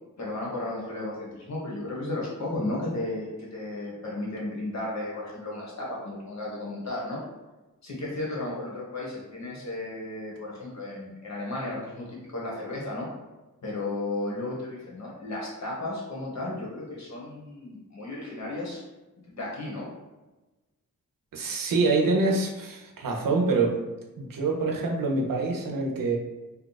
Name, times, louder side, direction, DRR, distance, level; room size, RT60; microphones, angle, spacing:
voice 1, 0.2-7.2 7.8-13.1 13.6-18.8 19.2-19.9, left 2 dB, 55° left, -4 dB, 1.1 m, -34 dB
voice 2, 21.3-23.8 24.2-26.2, right 3 dB, 80° right, 0 dB, 0.7 m, -25 dB
2.8 x 2.4 x 3.9 m, 1.1 s
wide cardioid pair, 175°, 33 cm